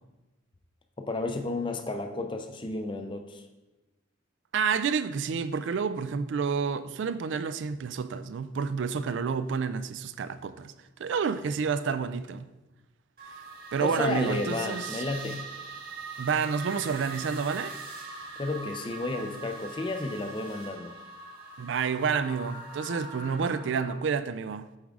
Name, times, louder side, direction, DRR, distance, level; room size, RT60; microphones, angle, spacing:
voice 1, 1.0-3.4 13.8-15.4 18.4-20.9, left 2 dB, 25° left, 0.5 m, -32 dB
voice 2, 4.5-10.7 11.0-12.5 13.7-15.0 16.2-17.7 21.6-24.7, right 6 dB, 65° right, 0.3 m, -29 dB
sound 1, 13.2-23.9, right 3 dB, 50° right, 1.4 m, -41 dB
7.2 x 4.7 x 3.6 m
head